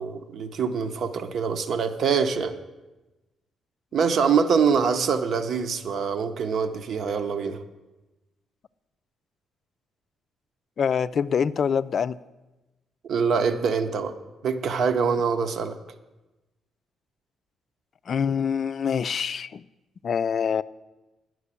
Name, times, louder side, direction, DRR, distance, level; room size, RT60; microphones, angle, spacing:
voice 1, 0.0-2.6 3.9-7.6 13.1-14.1 14.4-15.7, right 6 dB, 65° right, 9 dB, 0.8 m, -24 dB
voice 2, 10.8-12.2 18.1-19.6 20.0-20.6, left 7 dB, 50° left, 14 dB, 0.3 m, -25 dB
9.9 x 6.3 x 8.2 m, 1.1 s
cardioid pair, 90°, 0 cm